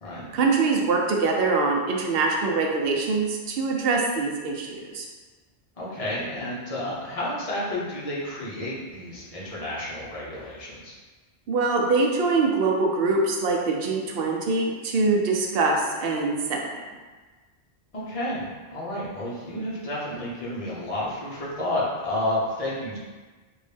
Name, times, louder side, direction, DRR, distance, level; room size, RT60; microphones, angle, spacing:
voice 1, 0.3-5.1 11.5-16.6, right 3 dB, 65° right, 0 dB, 0.7 m, -23 dB
voice 2, 5.8-10.9 17.9-23.0, left 1 dB, 35° left, -7 dB, 0.8 m, -31 dB
3.0 x 2.6 x 3.3 m, 1.3 s
omnidirectional pair, 1.2 m